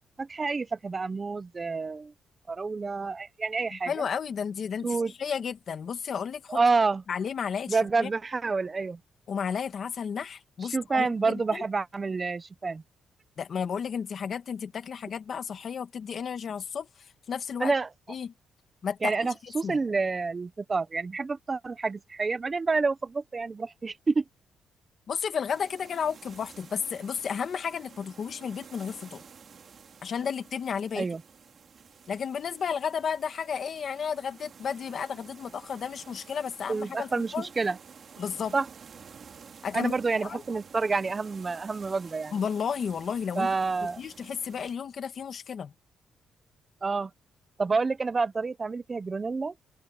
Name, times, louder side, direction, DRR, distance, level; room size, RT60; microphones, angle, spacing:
voice 1, 0.2-2.1 2.5-3.9 4.8-5.1 6.5-7.0 7.7-9.0 10.7-12.8 17.6-17.9 19.0-24.2 31.0-31.2 36.7-37.8 38.5-38.7 39.7-42.3 43.4-44.0 46.8-47.1 47.6-49.5, right 4 dB, 25° right, 0.8 m, -28 dB
voice 2, 3.9-6.6 7.1-8.1 9.3-11.6 13.4-16.9 17.3-17.7 18.1-18.3 18.8-19.3 19.6-19.8 25.1-29.2 30.0-31.1 32.1-37.5 38.2-38.5 39.6-39.9 40.2-40.4 42.3-43.5 44.0-45.7, left 7 dB, 45° left, 2.1 m, -32 dB
sound 1, 25.5-44.7, right 6 dB, 45° right, 2.3 m, -51 dB
open air
cardioid pair, 145°, 0 cm